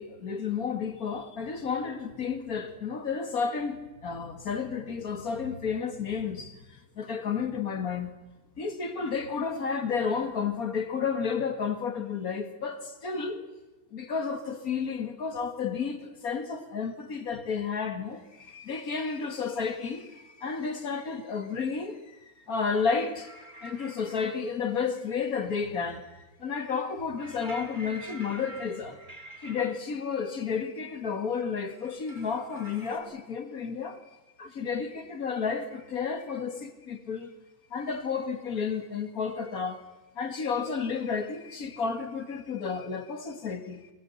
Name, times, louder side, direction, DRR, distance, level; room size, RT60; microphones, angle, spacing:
voice 1, 0.0-8.1 8.6-13.4 13.9-22.2 22.5-26.1 26.4-29.0 29.4-34.1 34.4-37.3 37.7-39.8 40.2-43.9, left 5 dB, 45° left, 2.4 m, -32 dB
sound 1, 23.2-24.4 27.2-29.7 31.7-33.0, right 2 dB, 25° right, 2.7 m, -47 dB
23.0 x 23.0 x 7.2 m
omnidirectional pair, 2.1 m